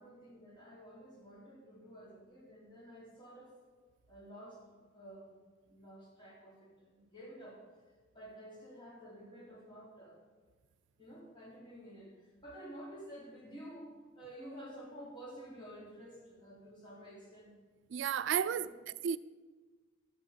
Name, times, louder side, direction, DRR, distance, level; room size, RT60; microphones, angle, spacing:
voice 1, 0.0-3.6 4.1-5.3 5.7-7.6 8.1-10.2 11.0-17.5 18.4-18.8, equal, 25° left, 3.7 m, -51 dB
voice 2, 17.9-19.2, right 8 dB, 65° right, 0.3 m, -33 dB
11.5 x 8.5 x 7.3 m
head